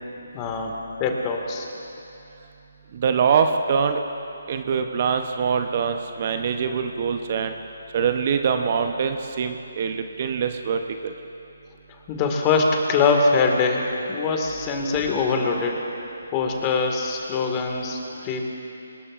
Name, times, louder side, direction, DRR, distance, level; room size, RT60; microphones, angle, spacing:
voice 1, 0.3-1.7 12.1-15.9 16.3-18.4, left 4 dB, 25° left, 1 dB, 2.0 m, -23 dB
voice 2, 2.9-4.0 4.5-7.5 7.9-11.1, right 6 dB, 40° right, 6 dB, 0.8 m, -24 dB
25.5 x 20.5 x 2.6 m, 2.8 s
figure-of-eight pair, 145°, 0 cm